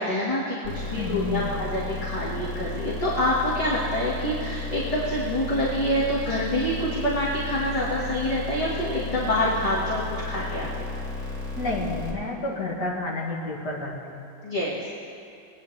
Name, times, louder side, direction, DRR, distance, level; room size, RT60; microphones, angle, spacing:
voice 1, 0.0-10.9 14.4-14.8, equal, 20° left, -7 dB, 1.6 m, -26 dB
sound 1, 0.6-12.1, left 3 dB, 40° right, 2.5 m, -33 dB
voice 2, 1.0-1.5 11.5-14.2, left 2 dB, 55° left, -4 dB, 2.4 m, -30 dB
21.5 x 9.5 x 3.3 m, 2.6 s
omnidirectional pair, 2.2 m